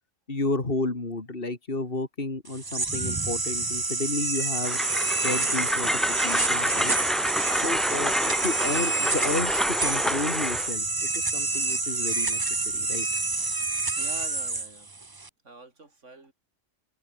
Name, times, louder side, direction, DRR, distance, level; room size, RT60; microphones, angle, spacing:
voice 1, 0.3-4.8 5.2-6.9 7.5-13.1, left 2 dB, 50° left, 3.3 m, -32 dB
sound 1, 2.5-15.3, right 3 dB, 20° right, 0.8 m, -28 dB
Train, 4.6-10.7, equal, ahead, 1.2 m, -28 dB
voice 2, 7.4-7.9 14.0-14.9 15.4-16.3, right 3 dB, 80° right, 3.9 m, -46 dB
omnidirectional pair, 1.2 m